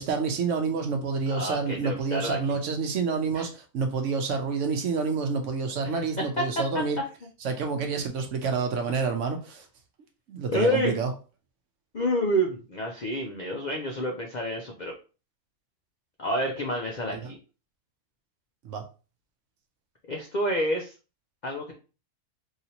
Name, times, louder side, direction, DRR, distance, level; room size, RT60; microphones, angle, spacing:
voice 1, 0.0-7.0 7.4-9.7 10.3-11.1 17.1-17.3 18.6-18.8, right 5 dB, 65° right, 5 dB, 0.9 m, -28 dB
voice 2, 1.3-2.6 3.3-3.4 5.8-6.0 6.4-6.5 10.5-11.0 11.9-14.9 16.2-17.4 20.1-20.9 21.4-21.7, equal, 65° left, 1 dB, 0.4 m, -28 dB
3.2 x 2.7 x 2.8 m, 0.34 s
omnidirectional pair, 1.5 m